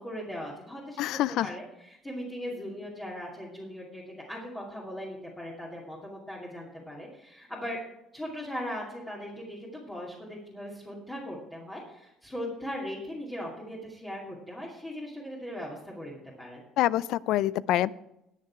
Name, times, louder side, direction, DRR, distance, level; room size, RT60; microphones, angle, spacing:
voice 1, 0.0-7.8 8.1-16.6, equal, 10° left, -5 dB, 2.7 m, -39 dB
voice 2, 1.0-1.5 16.8-17.9, left 14 dB, 65° left, 20 dB, 0.4 m, -26 dB
20.0 x 6.7 x 4.7 m, 0.85 s
cardioid pair, 125°, 0 cm